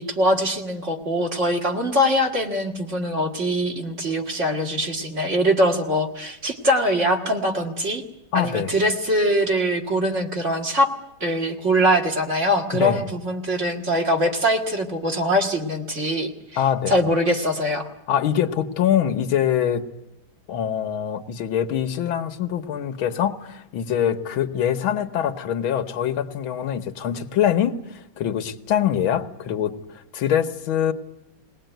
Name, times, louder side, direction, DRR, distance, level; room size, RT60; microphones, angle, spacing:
voice 1, 0.0-8.0 8.3-10.9 11.2-16.6 16.9-17.9, equal, 35° right, 3 dB, 2.2 m, -22 dB
voice 2, 8.3-8.7 12.7-13.1 16.6-17.0 18.1-19.8 20.5-30.9, left 9 dB, 85° left, 10 dB, 1.9 m, -24 dB
20.5 x 18.5 x 9.2 m, 0.86 s
omnidirectional pair, 2.2 m